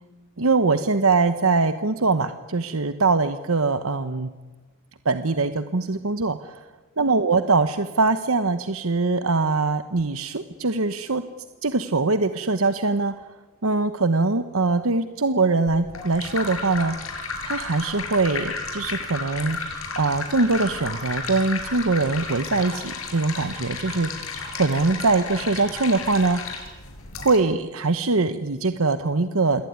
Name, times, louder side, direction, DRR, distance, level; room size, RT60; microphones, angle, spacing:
voice 1, 0.4-4.3 5.0-6.7 7.0-11.2 11.6-13.1 13.6-17.0 17.4-19.6 20.0-24.1 24.5-26.4 27.2-29.7, right 3 dB, 75° right, 10 dB, 1.1 m, -22 dB
sound 1, 15.7-27.4, left 4 dB, 75° left, 6.2 m, -33 dB
27.0 x 22.0 x 9.5 m, 1.3 s
head